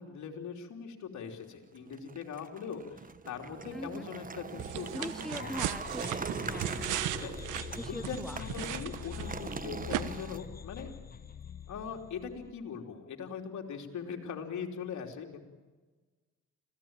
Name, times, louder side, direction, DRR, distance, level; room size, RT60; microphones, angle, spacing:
voice 1, 0.0-5.5 6.3-6.7 7.2-7.6 7.9-10.9 11.7-15.4, left 6 dB, 70° left, 3 dB, 3.4 m, -41 dB
sound 1, 1.8-10.4, right 5 dB, 30° right, 1.1 m, -42 dB
voice 2, 3.7-4.1 4.9-7.0 7.8-8.4, left 1 dB, ahead, 12 dB, 0.8 m, -42 dB
sound 2, 4.6-9.5 9.9-10.0, right 12 dB, 90° right, 1.2 m, -37 dB
sound 3, 5.3-12.5, left 7 dB, 30° left, 1.1 m, -44 dB
26.0 x 16.5 x 9.0 m, 1.3 s
cardioid pair, 90°, 30 cm